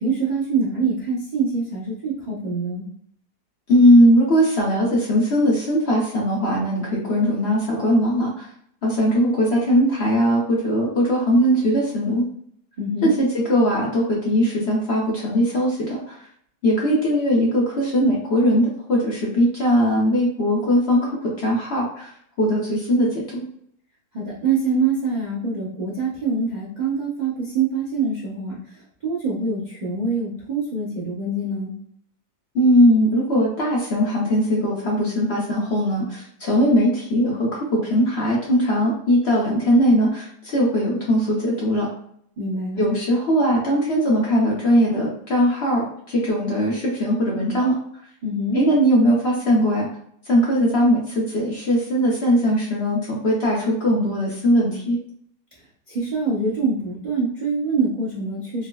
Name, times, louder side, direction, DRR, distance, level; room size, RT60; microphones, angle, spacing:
voice 1, 0.0-2.9 12.8-13.1 24.1-31.7 42.4-42.8 48.2-48.6 55.9-58.7, right 4 dB, 85° right, -6 dB, 0.4 m, -25 dB
voice 2, 3.7-8.5 8.8-12.3 13.0-16.2 16.6-22.1 22.4-23.5 32.5-41.9 42.8-47.8 48.5-49.9 50.3-55.0, equal, 55° left, -4 dB, 0.7 m, -20 dB
3.8 x 2.0 x 2.2 m, 0.65 s
omnidirectional pair, 1.8 m